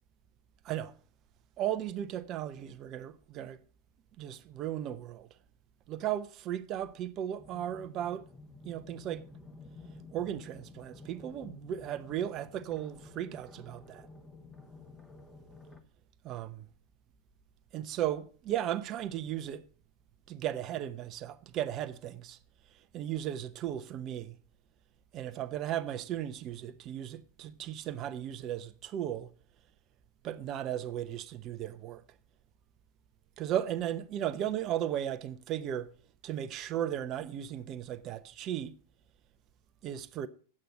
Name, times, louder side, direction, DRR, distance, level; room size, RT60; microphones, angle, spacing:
voice 1, 1.6-3.6 4.2-5.3 5.9-8.3 8.6-9.2 10.1-14.0 16.2-16.7 17.7-19.6 20.3-22.4 22.9-24.4 25.1-29.3 30.2-32.0 33.4-35.9 36.2-38.8 39.8-40.3, right 11 dB, 35° right, 0.7 m, -36 dB
sound 1, 7.4-15.8, left 2 dB, 5° left, 1.0 m, -51 dB
8.6 x 7.8 x 7.5 m
figure-of-eight pair, 90°, 0 cm